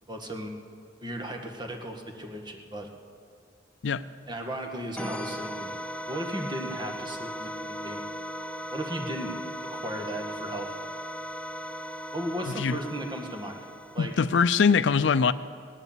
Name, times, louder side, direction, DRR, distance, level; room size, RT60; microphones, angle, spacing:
voice 1, 0.1-0.5 1.0-2.9 4.3-5.8 6.1-8.0 8.7-10.7 12.1-13.6 13.9-14.1, right 1 dB, 25° right, 3 dB, 1.6 m, -36 dB
sound 1, 5.0-14.4, equal, 5° left, 0.5 m, -37 dB
voice 2, 14.0-15.3, left 5 dB, 80° left, 15 dB, 0.5 m, -22 dB
18.0 x 11.0 x 7.3 m, 2.2 s
head